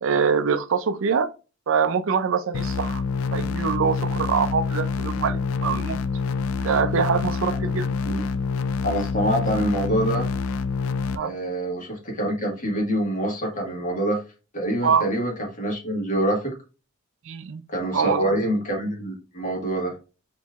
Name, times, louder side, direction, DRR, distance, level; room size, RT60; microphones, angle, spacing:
voice 1, 0.0-1.3 1.7-3.0 3.3-6.0 6.6-7.9 11.1-11.3 14.8-15.1 17.3-17.6 17.9-18.3, right 6 dB, 65° right, 0.4 m, -24 dB
sound 1, 2.5-11.2, left 4 dB, 85° left, 0.4 m, -27 dB
voice 2, 8.8-10.3 11.2-14.2 14.5-16.5 17.7-19.9, right 1 dB, 40° left, 1.6 m, -25 dB
4.4 x 3.0 x 2.4 m
head